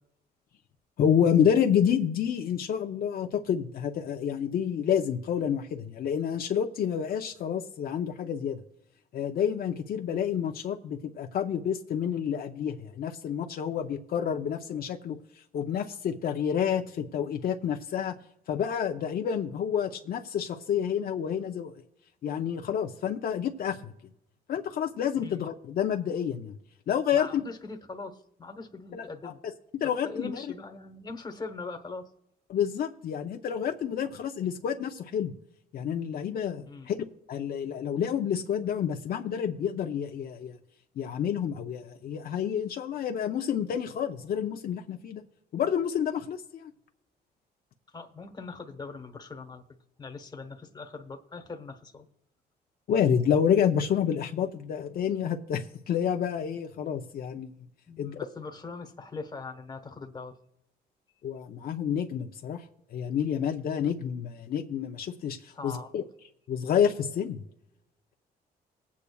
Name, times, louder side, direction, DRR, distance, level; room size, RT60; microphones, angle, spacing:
voice 1, 1.0-8.6 9.1-15.2 15.5-18.1 18.5-21.7 22.2-23.9 24.5-26.6 26.9-27.4 28.9-29.3 29.7-30.4 32.5-35.3 35.7-37.0 37.3-40.6 41.0-45.2 45.5-46.7 52.9-57.5 58.0-58.2 61.2-62.6 62.9-66.0 66.5-67.4, left 8 dB, 60° left, 4 dB, 0.6 m, -29 dB
voice 2, 27.1-29.4 30.0-32.1 36.7-36.9 47.9-49.6 50.0-52.1 57.9-60.4 65.5-65.9, left 4 dB, 25° left, 5 dB, 1.2 m, -41 dB
20.5 x 8.4 x 2.3 m, 0.83 s
cardioid pair, 110°, 17 cm